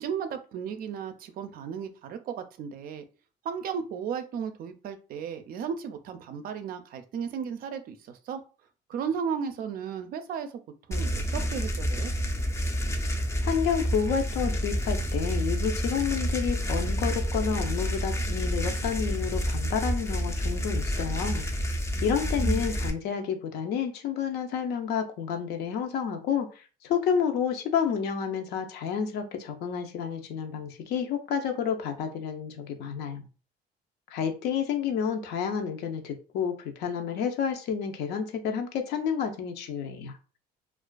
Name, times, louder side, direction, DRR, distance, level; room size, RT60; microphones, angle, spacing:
voice 1, 0.0-3.0 3.4-8.4 8.9-10.5 10.9-12.1 21.9-22.1 22.4-22.7, right 7 dB, 60° right, 9 dB, 0.4 m, -35 dB
sound 1, 10.9-22.9, equal, 15° left, 0.4 m, -29 dB
voice 2, 13.4-33.3 34.1-40.2, left 7 dB, 75° left, 5 dB, 0.5 m, -30 dB
2.4 x 2.3 x 2.2 m, 0.35 s
cardioid pair, 110°, 17 cm